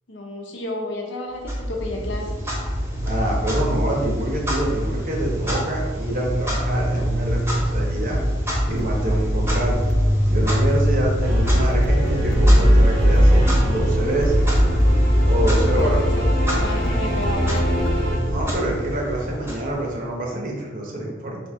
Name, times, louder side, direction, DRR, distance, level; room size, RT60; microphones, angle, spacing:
voice 1, 0.1-2.3 15.5-16.1 16.5-17.6, left 1 dB, 80° left, 0 dB, 0.8 m, -31 dB
Clock, 1.4-20.2, equal, 15° right, 0.8 m, -22 dB
voice 2, 3.0-8.2 8.7-9.9 10.2-14.4 15.3-16.2 18.2-21.4, right 1 dB, 50° right, -1 dB, 0.9 m, -26 dB
sound 1, 8.7-18.7, left 1 dB, 55° left, 0.4 m, -36 dB
sound 2, 11.2-18.2, equal, 85° right, 1.3 m, -23 dB
4.2 x 2.8 x 3.5 m, 1.3 s
head